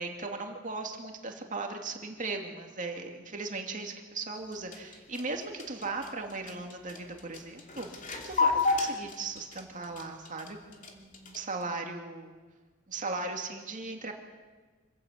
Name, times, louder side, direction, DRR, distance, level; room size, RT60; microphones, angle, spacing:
voice 1, 0.0-7.9 8.2-12.4 12.9-14.1, right 3 dB, 40° right, 3 dB, 2.5 m, -38 dB
sound 1, 4.4-11.6, left 4 dB, 40° left, 2.8 m, -32 dB
26.0 x 15.5 x 8.5 m, 1.4 s
head